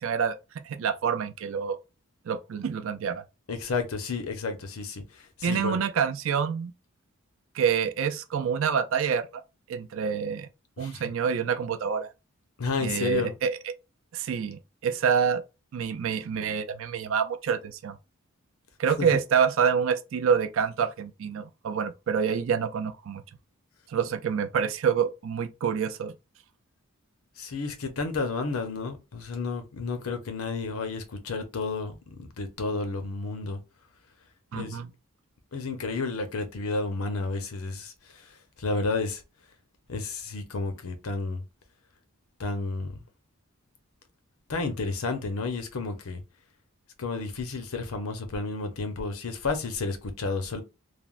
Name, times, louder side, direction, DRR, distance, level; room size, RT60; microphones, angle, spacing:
voice 1, 0.0-1.8 2.3-3.2 5.4-6.7 7.5-9.4 9.7-10.5 10.8-12.1 12.8-13.7 14.1-15.4 15.7-18.0 18.8-23.2 23.9-26.1 34.5-34.9, right 7 dB, 65° right, 0.4 m, -27 dB
voice 2, 3.5-5.8 10.8-11.0 12.6-13.3 19.0-19.1 27.4-33.6 34.5-34.8 35.5-38.2 38.6-39.2 39.9-41.4 42.4-43.0 44.5-46.2 47.0-50.6, left 3 dB, 80° left, 0.7 m, -31 dB
3.3 x 2.0 x 2.4 m
head